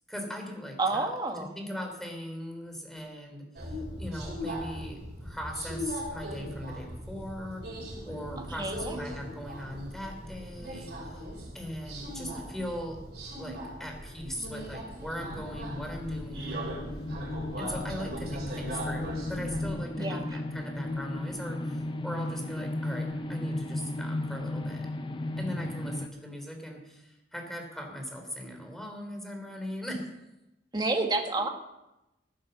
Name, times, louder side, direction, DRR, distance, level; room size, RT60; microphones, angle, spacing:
voice 1, 0.1-1.1 1.5-3.7 4.0-7.7 8.0-11.2 11.5-13.0 13.4-16.7 17.6-24.9 25.4-30.1 31.4-31.5, equal, ahead, 2 dB, 3.2 m, -39 dB
voice 2, 0.8-1.6 8.6-9.0 20.0-20.4 30.7-31.5, right 2 dB, 25° right, 3 dB, 1.7 m, -29 dB
Subway metro underground, 3.6-19.7, equal, 65° right, 5.6 m, -39 dB
sound 1, 15.2-26.1, left 2 dB, 30° left, 0.7 m, -35 dB
15.5 x 8.7 x 6.8 m, 0.94 s
head